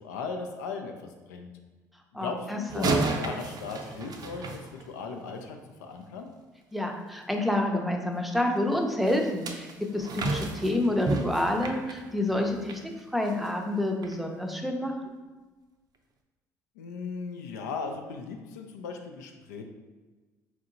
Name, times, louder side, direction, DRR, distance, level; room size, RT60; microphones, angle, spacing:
voice 1, 0.0-1.5 2.2-6.3 16.8-19.6, left 4 dB, 80° left, 4 dB, 0.4 m, -37 dB
voice 2, 2.1-2.9 6.7-12.8 13.1-14.9, left 1 dB, ahead, 2 dB, 0.6 m, -28 dB
sound 1, 2.7-5.3 9.1-12.8 13.3-13.5 14.0-14.1, right 3 dB, 45° right, 0.5 m, -32 dB
4.3 x 2.7 x 2.6 m, 1.3 s
hypercardioid pair, 55°, 9 cm